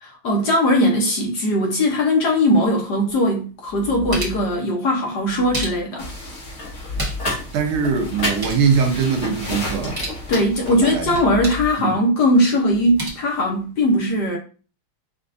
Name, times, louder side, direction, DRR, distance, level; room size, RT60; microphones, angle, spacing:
voice 1, 0.0-6.1 10.3-14.4, left 1 dB, 60° left, 1.2 m, -19 dB
sound 1, 3.1-3.2 3.6-4.5 5.2-6.1 6.7-7.4 7.7-7.8 8.1-8.7 9.7-10.2 11.1-11.7 12.7-13.1, equal, 20° right, 0.5 m, -31 dB
sound 2, 6.0-11.2, left 1 dB, 35° left, 1.4 m, -30 dB
voice 2, 7.5-10.0 10.7-11.1 11.8-12.0, right 6 dB, 85° right, 1.6 m, -21 dB
5.5 x 2.4 x 2.5 m
omnidirectional pair, 2.3 m